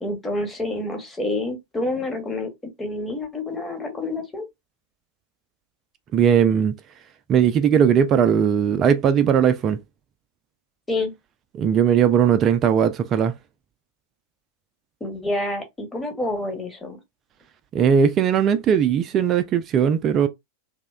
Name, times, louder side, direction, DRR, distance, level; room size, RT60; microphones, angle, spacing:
voice 1, 0.0-2.5 2.8-4.5 10.9-11.1 15.0-17.0, left 2 dB, 10° left, 0.8 m, -28 dB
voice 2, 6.1-6.7 7.3-9.8 11.5-13.3 17.7-20.3, right 8 dB, 30° right, 0.3 m, -18 dB
2.7 x 2.1 x 2.3 m
figure-of-eight pair, 90°, 0 cm